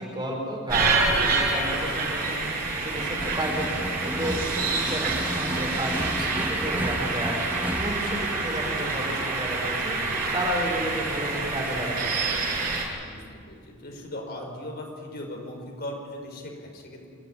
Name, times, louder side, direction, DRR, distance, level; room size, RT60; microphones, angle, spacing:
voice 1, 0.0-2.4 2.8-4.4 4.7-7.4 7.8-10.0 10.3-12.4, right 1 dB, 25° right, 0 dB, 4.7 m, -32 dB
sound 1, 0.7-12.8, right 3 dB, 45° right, 6.3 m, -27 dB
sound 2, 3.2-8.5, equal, 10° right, 1.0 m, -33 dB
voice 2, 4.7-5.0 13.0-17.1, left 1 dB, 50° left, 1 dB, 5.2 m, -39 dB
26.0 x 14.0 x 9.9 m, 2.2 s
head